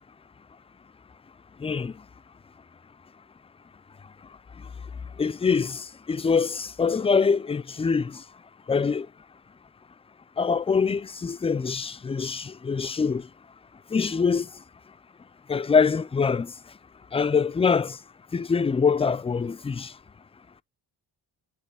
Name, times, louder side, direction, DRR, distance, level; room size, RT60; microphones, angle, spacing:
voice 1, 1.6-1.9 5.2-8.2 8.7-9.1 10.4-13.2 13.9-14.5 15.5-16.5 17.1-18.0 18.3-19.9, left 5 dB, 15° left, 0.4 m, -24 dB
10.0 x 3.7 x 3.4 m
supercardioid pair, 65°, 42 cm